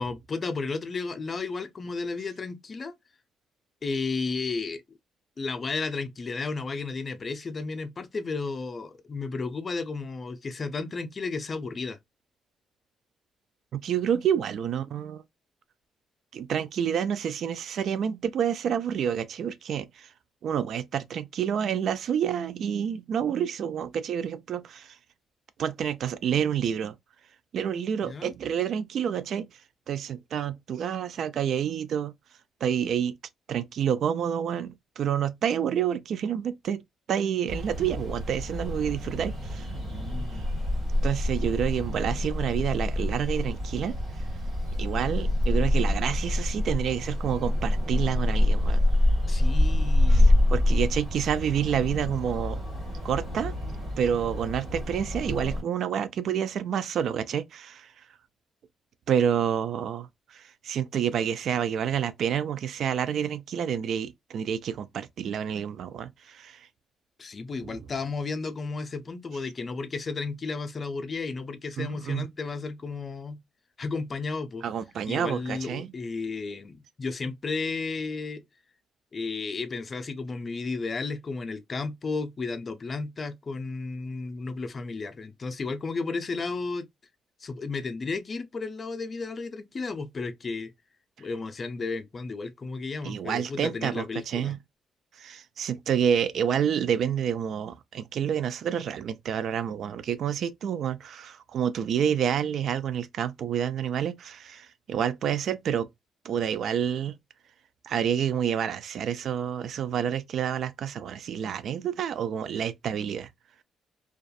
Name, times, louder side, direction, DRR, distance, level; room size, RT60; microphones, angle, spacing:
voice 1, 0.0-2.9 3.8-5.0 5.4-12.0 28.0-28.3 39.9-40.5 49.3-50.3 67.2-73.4 73.8-74.6 75.1-78.4 79.1-86.9 87.4-90.7 91.2-94.5, left 4 dB, 35° left, 0.5 m, -33 dB
voice 2, 13.7-15.2 16.3-20.1 20.4-25.0 25.6-27.0 27.5-29.5 29.9-32.1 32.6-33.1 33.5-36.8 37.1-39.7 41.0-44.0 44.8-48.8 49.7-49.8 50.1-52.6 53.0-53.5 54.0-57.9 59.1-66.7 67.6-67.8 71.8-72.3 74.6-75.9 93.0-94.6 95.2-105.9 106.2-107.2 107.8-113.3, right 8 dB, 65° right, 0.3 m, -28 dB
sound 1, 37.5-55.6, left 1 dB, 40° right, 1.4 m, -26 dB
2.5 x 2.3 x 2.3 m
cardioid pair, 90°, 0 cm